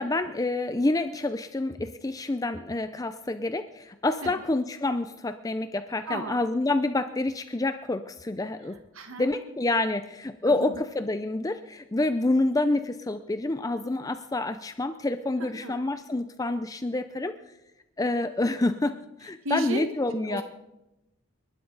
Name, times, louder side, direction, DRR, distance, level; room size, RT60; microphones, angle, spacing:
voice 1, 0.0-8.8 9.2-17.3 18.0-20.4, left 2 dB, 15° left, 10 dB, 0.5 m, -28 dB
voice 2, 6.1-6.4 8.6-9.6 10.5-10.8 15.4-15.8 19.4-20.4, right 1 dB, 70° right, 6 dB, 1.6 m, -35 dB
29.0 x 12.0 x 4.0 m, 0.96 s
head